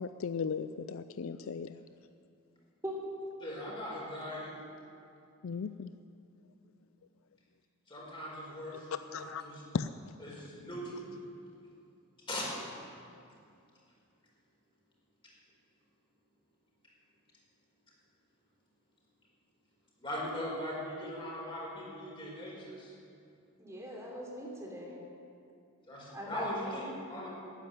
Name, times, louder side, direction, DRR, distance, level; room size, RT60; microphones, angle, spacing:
voice 1, 0.0-1.8 5.4-5.9 9.1-9.4 9.7-10.1, left 5 dB, 65° left, 11 dB, 0.4 m, -36 dB
voice 2, 3.4-4.5 7.9-9.6 10.2-11.0 12.3-12.4 20.0-22.9 25.9-27.3, left 1 dB, 25° left, -4 dB, 4.5 m, -40 dB
voice 3, 23.6-25.0 26.1-26.5, equal, 15° right, -3 dB, 3.3 m, -41 dB
13.0 x 9.8 x 10.0 m, 2.5 s
head